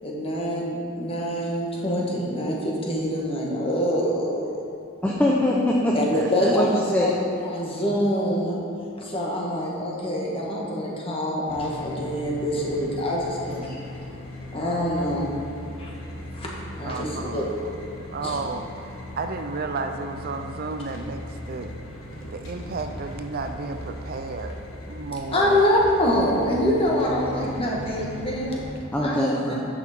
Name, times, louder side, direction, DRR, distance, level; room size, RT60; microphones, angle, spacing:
voice 1, 0.0-4.7 5.9-8.6 9.0-13.7 14.5-15.3 15.8-15.9 16.3-16.5 16.8-17.4 18.2-18.4 25.3-28.6 29.0-29.3, equal, 25° left, -3 dB, 1.4 m, -25 dB
voice 2, 5.0-6.0 6.6-7.1 13.7-13.8 17.0-17.1 28.9-29.6, left 1 dB, 10° left, -4 dB, 0.6 m, -23 dB
voice 3, 6.1-6.5 16.8-18.6 19.2-21.7 22.3-24.6 24.9-25.6 27.7-27.8, right 3 dB, 45° right, 6 dB, 0.4 m, -33 dB
sound 1, 11.5-28.7, left 1 dB, 90° left, 1.2 m, -38 dB
10.0 x 6.1 x 4.3 m, 2.7 s
head